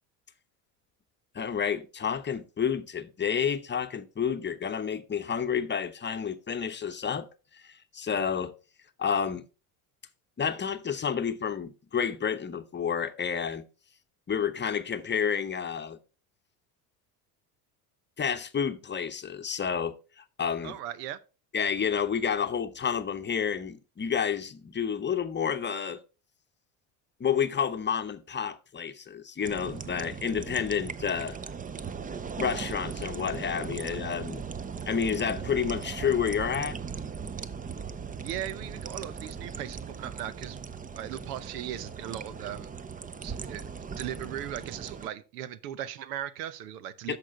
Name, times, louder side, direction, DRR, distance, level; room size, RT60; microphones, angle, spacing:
voice 1, 1.3-7.3 7.5-8.5 9.0-9.5 10.4-13.6 14.3-16.0 18.2-20.8 21.5-26.0 27.2-31.4 32.4-34.5 34.9-36.8 47.1-47.2, left 7 dB, 25° left, 0.8 m, -30 dB
voice 2, 20.6-21.2 38.2-40.6 40.9-42.7 43.2-47.2, right 11 dB, 90° right, 0.8 m, -38 dB
sound 1, 29.4-45.1, right 6 dB, 20° right, 0.5 m, -38 dB
13.0 x 5.0 x 3.7 m
supercardioid pair, 85°, 46 cm